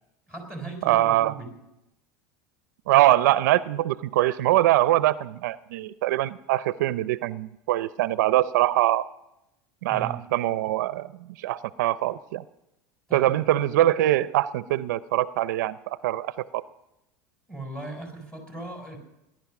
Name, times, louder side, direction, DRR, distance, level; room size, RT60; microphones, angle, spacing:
voice 1, 0.3-1.6 9.9-10.2 13.1-13.3 17.5-19.0, right 2 dB, 10° left, 2 dB, 4.1 m, -38 dB
voice 2, 0.8-1.3 2.9-9.0 9.8-11.1 11.4-12.4 13.1-16.6, right 15 dB, 85° right, 16 dB, 0.5 m, -23 dB
18.5 x 11.0 x 6.0 m, 0.89 s
supercardioid pair, 135°, 9 cm